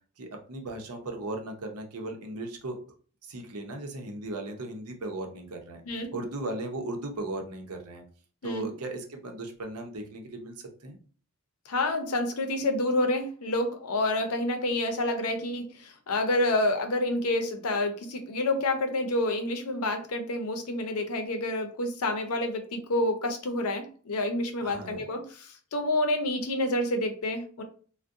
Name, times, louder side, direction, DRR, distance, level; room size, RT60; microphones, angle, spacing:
voice 1, 0.2-2.8 3.2-8.0 8.4-11.0 24.6-25.0, right 2 dB, 85° right, 3 dB, 0.7 m, -37 dB
voice 2, 11.7-27.6, left 1 dB, 75° left, 5 dB, 0.6 m, -28 dB
2.5 x 2.1 x 3.6 m, 0.42 s
head